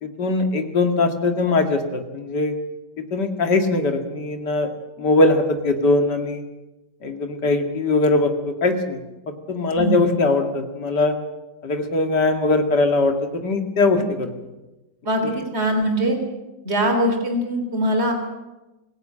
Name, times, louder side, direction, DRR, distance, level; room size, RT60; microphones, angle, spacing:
voice 1, 0.0-2.5 3.1-4.7 5.0-6.4 7.0-9.0 9.5-11.1 11.6-14.3 15.2-15.4, left 2 dB, 70° left, 5 dB, 2.7 m, -21 dB
voice 2, 15.0-16.2 16.6-18.1, right 1 dB, 35° right, 5 dB, 3.7 m, -22 dB
25.0 x 16.5 x 8.7 m, 1.1 s
omnidirectional pair, 1.9 m